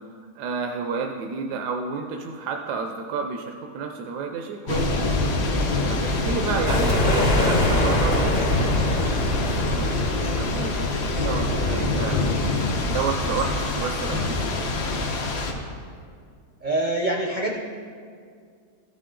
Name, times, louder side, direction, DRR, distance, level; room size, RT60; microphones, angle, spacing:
voice 1, 0.4-5.3 5.9-9.0 9.3-12.2 12.9-14.7, right 5 dB, 85° right, 3 dB, 1.2 m, -31 dB
Thunder / Rain, 4.7-15.5, left 2 dB, 80° left, 1.5 m, -25 dB
sound 1, 6.7-11.6, left 1 dB, 45° left, 0.5 m, -24 dB
voice 2, 16.6-17.5, right 1 dB, 60° right, -1 dB, 0.5 m, -25 dB
14.0 x 5.7 x 3.7 m, 2.2 s
omnidirectional pair, 1.7 m